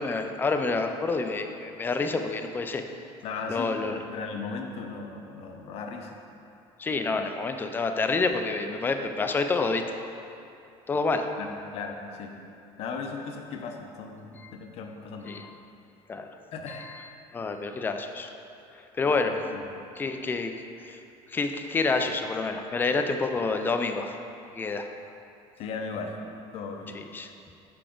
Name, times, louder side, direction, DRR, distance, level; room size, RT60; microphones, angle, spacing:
voice 1, 0.0-2.8 3.5-4.0 6.8-9.8 10.9-11.3 14.4-14.5 15.3-15.5 16.1-16.3 16.7-18.3 19.0-19.4 20.0-20.5 20.9-21.0 21.3-24.1 24.5-24.9 26.9-27.3, left 3 dB, 15° left, 6 dB, 0.3 m, -28 dB
voice 2, 3.2-6.2 11.4-12.3 12.8-15.3 16.5-16.9 19.0-19.7 25.6-26.1 26.5-27.0, left 4 dB, 55° left, 3 dB, 0.7 m, -37 dB
7.0 x 4.8 x 3.7 m, 2.6 s
cardioid pair, 140°, 12 cm